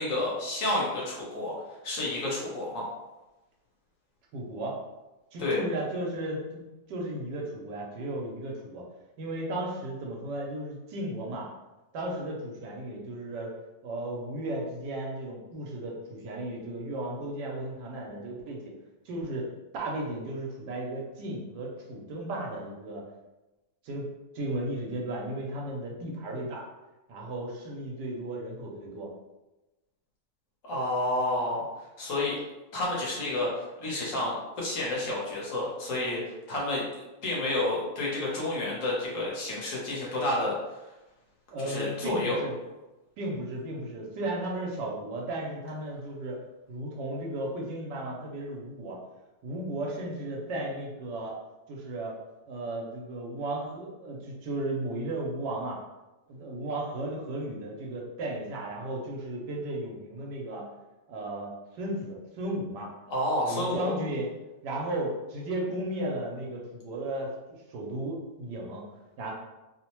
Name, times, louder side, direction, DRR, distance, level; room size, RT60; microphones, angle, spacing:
voice 1, 0.0-1.5 1.8-2.9 5.4-5.6 30.6-31.7 32.0-32.3 32.7-40.6 41.6-42.4 63.1-63.9, left 1 dB, 55° left, -4 dB, 1.1 m, -30 dB
voice 2, 4.3-4.8 5.3-8.8 9.2-11.5 11.9-13.5 13.8-18.7 19.0-19.5 19.7-23.0 23.8-24.1 24.3-26.7 27.1-29.1 41.5-42.6 43.2-46.4 46.7-49.0 49.4-51.3 51.7-52.2 52.5-55.8 56.3-60.7 61.1-62.9 63.4-64.3 64.6-67.3 67.7-68.9 69.2-69.3, right 1 dB, 80° right, -2 dB, 1.2 m, -35 dB
3.0 x 2.1 x 2.9 m, 1.1 s
omnidirectional pair, 1.9 m